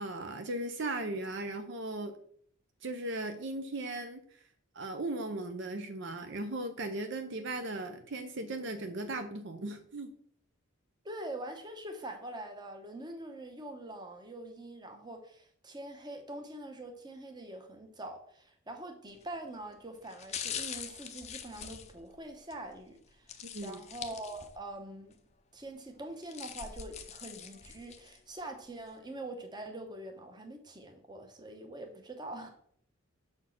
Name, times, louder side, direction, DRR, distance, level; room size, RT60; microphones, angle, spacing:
voice 1, 0.0-2.1 2.8-4.2 4.7-10.1 23.4-23.8, right 2 dB, 55° right, 7 dB, 0.6 m, -37 dB
voice 2, 11.0-23.3 23.6-25.1 25.5-32.5, right 1 dB, 20° right, 5 dB, 0.9 m, -44 dB
sound 1, 19.1-19.4 20.0-22.6 23.3-24.7 25.1-25.2 26.0-28.2 28.7-28.8, left 8 dB, 30° left, 0.5 m, -43 dB
6.0 x 4.4 x 5.9 m, 0.62 s
head